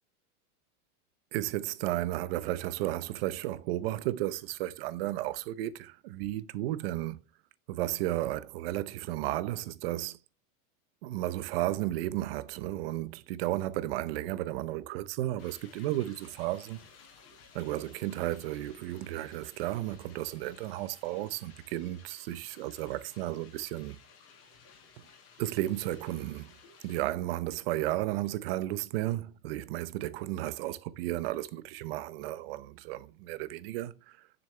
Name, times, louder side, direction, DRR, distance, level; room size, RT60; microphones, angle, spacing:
voice 1, 1.3-7.2 7.7-10.2 11.0-16.8 17.5-24.0 25.4-26.5 26.8-34.2, right 15 dB, 40° right, 0.6 m, -33 dB
sound 1, 15.4-27.0, left 6 dB, 50° left, 4.6 m, -57 dB
9.9 x 6.9 x 3.3 m
supercardioid pair, 165°, 45 cm